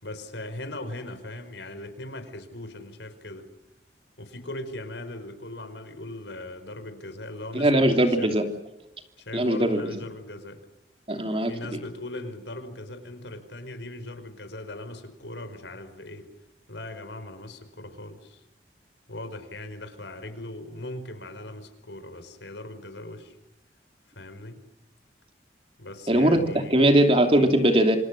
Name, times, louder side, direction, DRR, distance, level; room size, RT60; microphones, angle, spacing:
voice 1, 0.0-3.5 4.2-8.3 9.2-10.6 11.4-16.3 16.7-18.4 19.1-23.4 24.2-24.6 25.8-26.9, left 1 dB, 85° left, 8 dB, 5.2 m, -39 dB
voice 2, 7.5-8.5 9.3-9.8 11.1-11.5 26.1-28.0, right 1 dB, 30° right, 5 dB, 2.9 m, -20 dB
28.5 x 26.0 x 6.4 m, 0.93 s
head